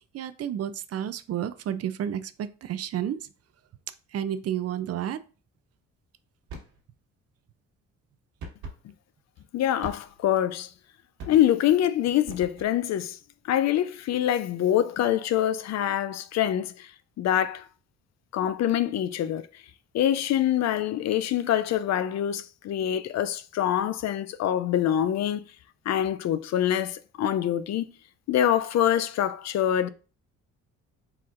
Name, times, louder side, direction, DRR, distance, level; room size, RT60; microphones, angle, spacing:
voice 1, 0.1-3.2 4.1-5.2, right 10 dB, 55° right, 0.5 m, -31 dB
sound 1, 6.5-6.8 8.4-8.8 9.8-10.3 11.2-11.7 12.2-12.9, right 3 dB, 85° right, 1.5 m, -42 dB
voice 2, 9.5-10.7 11.2-13.2 13.5-16.9 17.2-17.7 18.3-19.5 19.9-25.4 25.9-27.9 28.3-29.9, left 11 dB, 60° left, 0.5 m, -25 dB
4.3 x 4.1 x 2.5 m
cardioid pair, 90°, 30 cm